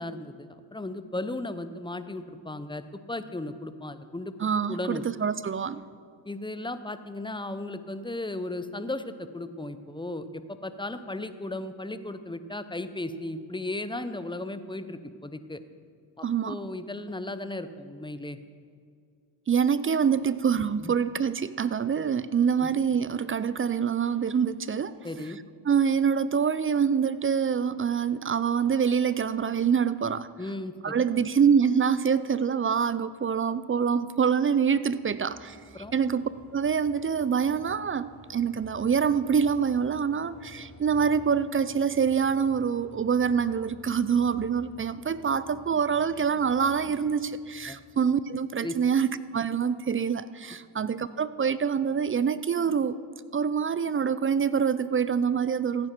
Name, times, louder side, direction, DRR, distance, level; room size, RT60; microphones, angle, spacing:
voice 1, 0.0-4.4 4.7-5.0 6.2-15.6 16.2-18.4 20.8-20.9 22.5-22.7 25.0-25.4 30.4-31.0 35.7-35.9 47.7-47.8 48.6-48.7, left 2 dB, 10° left, 11 dB, 0.7 m, -36 dB
voice 2, 4.4-5.8 16.2-16.5 19.5-24.9 25.6-30.3 30.8-35.6 35.9-53.0 53.3-55.9, right 7 dB, 30° right, 16 dB, 0.4 m, -25 dB
sound 1, 34.9-48.0, left 2 dB, 25° left, 2.1 m, -52 dB
15.5 x 9.5 x 4.5 m, 2.2 s
supercardioid pair, 55°, 49 cm